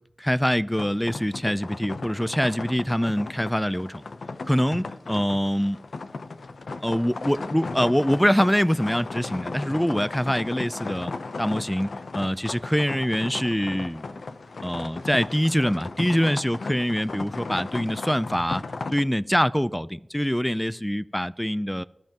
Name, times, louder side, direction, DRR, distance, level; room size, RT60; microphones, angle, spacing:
voice 1, 0.2-4.0 4.5-5.8 6.8-11.1 11.4-14.2 14.6-18.6 18.9-21.8, equal, 5° left, 0.4 m, -24 dB
sound 1, 0.8-19.0, left 3 dB, 80° left, 0.7 m, -36 dB
20.0 x 12.5 x 3.0 m
cardioid pair, 45°, 0 cm